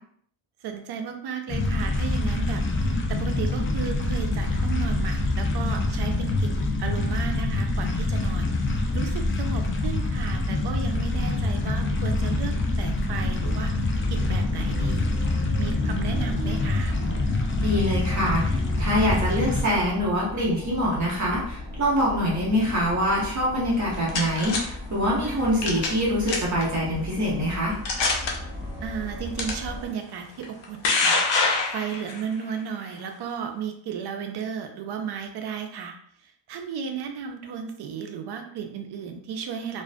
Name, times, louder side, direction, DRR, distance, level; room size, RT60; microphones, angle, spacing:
voice 1, 0.6-13.7 14.1-15.1 15.6-17.0 25.2-25.5 28.8-31.2 31.7-35.9 36.2-39.8, right 7 dB, 55° right, 5 dB, 0.5 m, -34 dB
sound 1, 1.5-19.6, left 2 dB, 30° left, 0.4 m, -25 dB
sound 2, 11.1-29.9, left 1 dB, 10° right, 0.8 m, -38 dB
voice 2, 17.6-27.7, equal, 35° right, -5 dB, 1.0 m, -24 dB
sound 3, 23.7-24.6 25.6-26.0 26.3-26.6 27.3-27.4 27.8-28.3 29.4-29.5 30.4-32.2, left 4 dB, 60° left, 0.7 m, -24 dB
2.4 x 2.3 x 2.2 m, 0.65 s
cardioid pair, 95°, 48 cm